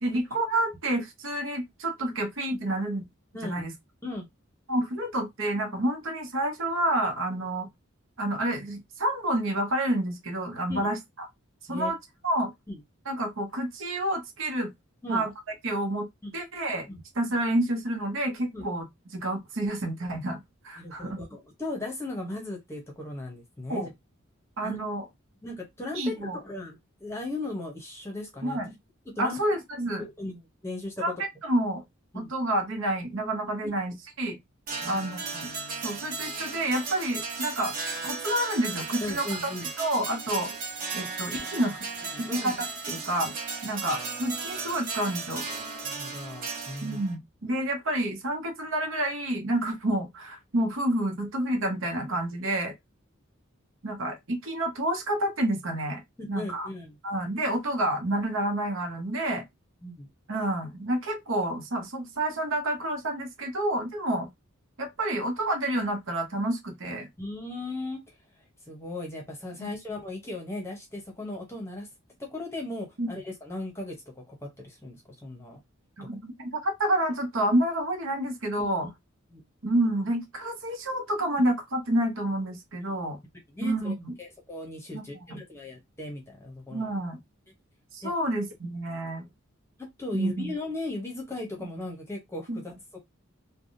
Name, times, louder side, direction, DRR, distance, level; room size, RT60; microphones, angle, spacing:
voice 1, 0.0-3.0 3.4-3.7 4.7-7.7 8.2-11.3 11.7-12.0 12.2-12.5 13.1-14.7 15.1-15.3 15.6-16.1 16.3-16.9 17.1-18.9 19.1-20.4 20.6-21.2 23.7-23.9 24.6-25.0 25.9-26.4 28.4-28.7 29.2-30.0 31.0-31.8 32.1-34.4 34.8-35.5 35.8-37.8 38.0-39.5 39.8-40.5 40.9-41.9 42.2-43.3 43.6-45.5 46.8-52.7 53.8-56.0 56.3-56.7 57.0-59.4 60.3-64.3 64.8-67.1 69.6-69.7 73.0-73.1 76.0-78.9 79.6-83.2 83.6-84.1 84.9-85.4 86.7-87.2 87.9-89.3 90.1-90.5 92.5-92.6, right 1 dB, 70° right, 0.9 m, -29 dB
voice 2, 20.8-23.9 24.6-24.8 25.4-28.6 29.1-29.4 30.0-31.1 32.1-32.3 33.6-33.7 34.8-35.0 39.0-39.7 42.1-42.6 45.8-47.0 56.3-57.0 59.8-60.1 67.2-68.0 68.7-71.9 72.2-75.6 78.6-78.9 79.3-79.4 82.8-82.9 83.5-86.9 88.0-88.1 89.8-93.0, left 2 dB, 15° left, 0.9 m, -37 dB
sound 1, 34.7-47.1, right 4 dB, 40° right, 1.0 m, -35 dB
3.3 x 2.2 x 2.6 m
head